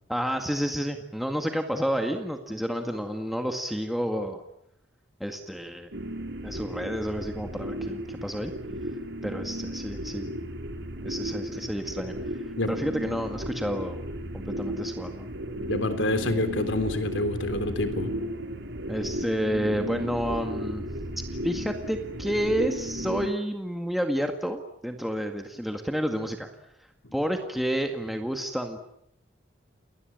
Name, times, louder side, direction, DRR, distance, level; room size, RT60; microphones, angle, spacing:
voice 1, 0.1-4.4 5.2-5.9 6.4-8.5 9.2-10.3 11.0-12.1 12.7-14.0 14.3-15.3 18.9-20.9 21.2-26.5 27.1-28.8, equal, ahead, 4 dB, 1.9 m, -30 dB
sound 1, 5.9-23.3, right 1 dB, 70° right, 3.2 m, -35 dB
voice 2, 15.6-18.1 27.0-27.1, left 2 dB, 90° left, 9 dB, 3.7 m, -27 dB
29.5 x 20.0 x 8.9 m, 0.74 s
head